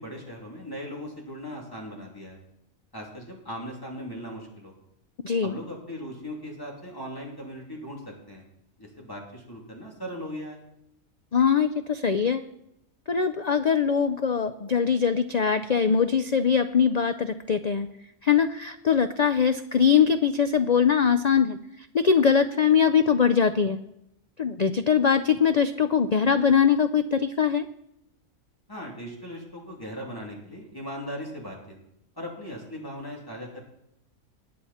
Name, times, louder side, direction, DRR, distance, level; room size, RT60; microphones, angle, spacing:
voice 1, 0.0-2.4 2.9-4.7 5.4-8.4 8.8-10.6 28.7-31.8 32.1-33.6, equal, 15° left, -2 dB, 3.0 m, -38 dB
voice 2, 5.2-5.5 11.3-12.4 13.1-17.9 18.2-23.8 24.4-27.6, left 7 dB, 75° left, 9 dB, 0.3 m, -22 dB
20.0 x 8.5 x 4.3 m, 0.81 s
omnidirectional pair, 1.4 m